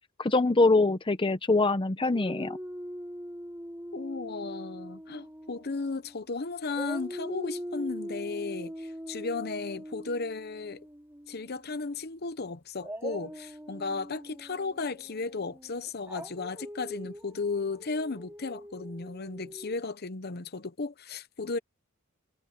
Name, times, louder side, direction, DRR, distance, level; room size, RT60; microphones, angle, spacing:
voice 1, 0.2-2.6, left 3 dB, 25° left, 0.7 m, -24 dB
Dog, 2.1-6.3 6.7-11.7 12.8-19.8, equal, 10° right, 3.0 m, -42 dB
voice 2, 3.9-10.8 11.3-21.6, left 3 dB, 50° left, 0.9 m, -35 dB
head